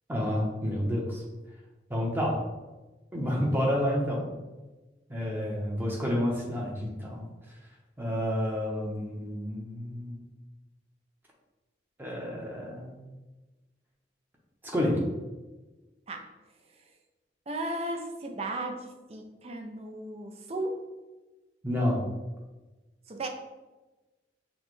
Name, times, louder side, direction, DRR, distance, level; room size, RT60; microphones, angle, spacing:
voice 1, 0.1-1.2 1.9-2.4 3.1-4.3 5.1-7.3 8.0-10.3 12.0-13.1 14.6-15.0 21.6-22.0, equal, 10° right, -3 dB, 0.8 m, -29 dB
voice 2, 17.5-20.8 23.1-23.3, right 1 dB, 35° right, 3 dB, 0.5 m, -35 dB
6.3 x 2.2 x 3.1 m, 1.2 s
head